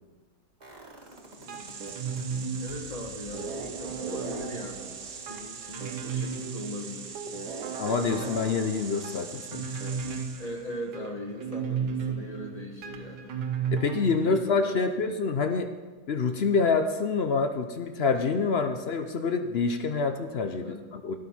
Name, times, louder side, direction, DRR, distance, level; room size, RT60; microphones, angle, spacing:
sound 1, 0.6-2.2 2.7-8.5 8.8-8.9, right 2 dB, 25° right, 1.8 m, -53 dB
sound 2, 1.1-10.7, right 5 dB, 55° right, 1.4 m, -41 dB
voice 1, 1.4-1.8 2.6-4.9 5.2-7.1 10.3-13.4 14.2-15.2 18.7-18.8 20.6-20.8, left 1 dB, 25° left, 1 dB, 1.1 m, -40 dB
sound 3, 1.5-14.4, right 6 dB, 75° right, 1.6 m, -35 dB
voice 2, 7.8-9.9 13.7-15.7 16.1-21.1, left 4 dB, 60° left, 7 dB, 0.6 m, -27 dB
12.5 x 11.0 x 4.3 m, 1.3 s
omnidirectional pair, 1.9 m